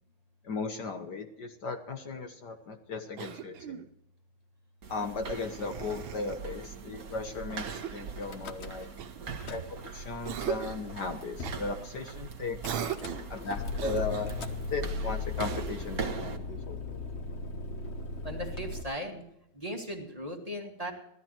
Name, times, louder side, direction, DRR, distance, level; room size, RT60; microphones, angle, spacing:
voice 1, 0.4-3.8 4.9-8.9 9.5-12.8 13.3-14.3 14.7-17.0, left 4 dB, 60° left, 5 dB, 1.7 m, -36 dB
Cough, 3.2-3.9 5.3-6.4 7.6-8.2 9.0-9.8 10.2-10.9 11.4-11.6 12.6-13.3 13.7-14.5 15.4-15.9, right 9 dB, 90° right, 1.8 m, -39 dB
sound 1, 4.8-16.4, right 5 dB, 50° right, 1.6 m, -42 dB
Car / Engine starting / Idling, 8.2-9.0 9.3-10.1 10.7-10.8 11.0-11.1 11.4-11.7 12.6-18.8, left 3 dB, 40° left, 1.1 m, -37 dB
voice 2, 18.2-19.2 19.5-20.9, equal, 20° right, 0 dB, 2.3 m, -37 dB
16.5 x 13.0 x 4.5 m, 0.75 s
omnidirectional pair, 2.2 m